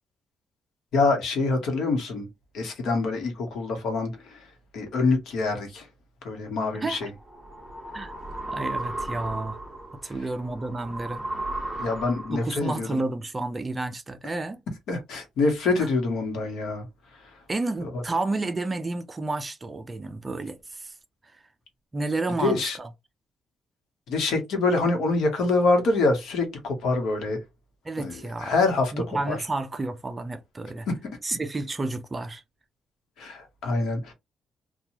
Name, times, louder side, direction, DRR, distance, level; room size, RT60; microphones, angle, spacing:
voice 1, 0.9-2.3 2.5-4.5 4.7-5.9 6.2-7.1 10.0-10.1 11.8-13.0 14.9-16.9 17.1-17.3 17.9-18.0 22.4-22.8 24.1-27.4 28.0-28.9 29.3-29.4 30.9-31.0 33.2-34.1, left 3 dB, 75° left, 1.0 m, -25 dB
sound 1, 6.8-12.6, right 2 dB, ahead, 0.8 m, -35 dB
voice 2, 8.5-9.6 10.0-11.2 12.3-14.6 15.8-15.9 17.5-20.9 21.3-21.4 21.9-22.9 27.8-28.6 28.9-30.9 31.2-32.4, right 2 dB, 20° right, 0.3 m, -31 dB
2.9 x 2.2 x 2.7 m
cardioid pair, 155°, 0 cm